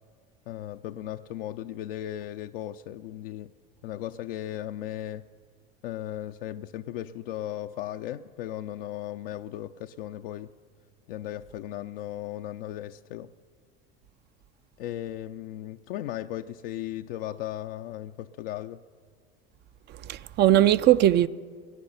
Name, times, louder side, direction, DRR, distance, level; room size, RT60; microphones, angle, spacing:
voice 1, 0.5-3.5 3.8-5.2 5.8-10.5 11.1-13.3 14.8-18.8, left 12 dB, 65° left, 0.5 m, -36 dB
voice 2, 19.9-21.3, right 13 dB, 35° right, 0.4 m, -20 dB
20.5 x 9.7 x 5.5 m
hypercardioid pair, 75°, 30 cm